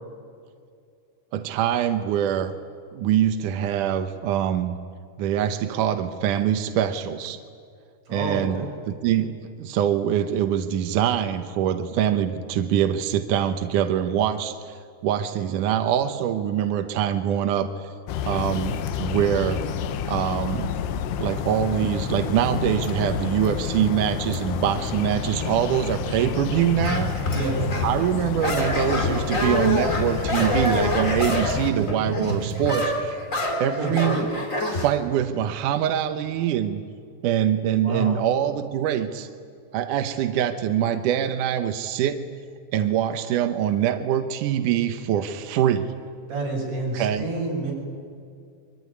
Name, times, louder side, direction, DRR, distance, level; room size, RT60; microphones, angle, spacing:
voice 1, 1.3-2.5 2.9-4.8 5.2-7.4 8.1-9.3 9.6-14.7 15.0-17.9 18.2-19.7 20.1-20.7 21.2-27.1 27.8-33.2 33.6-34.2 34.7-36.8 37.2-39.3 39.7-42.2 42.7-45.9 46.9-47.2, right 10 dB, 75° right, 8 dB, 1.9 m, -24 dB
voice 2, 8.1-8.7 27.3-27.7 33.8-34.3 37.8-38.2 46.3-47.7, right 2 dB, 40° right, -2 dB, 8.0 m, -29 dB
sound 1, 18.1-31.7, left 8 dB, 75° left, 3.1 m, -29 dB
sound 2, 26.8-28.0 28.4-34.9, left 1 dB, 20° left, 2.5 m, -26 dB
25.0 x 24.0 x 9.7 m, 2.3 s
omnidirectional pair, 4.9 m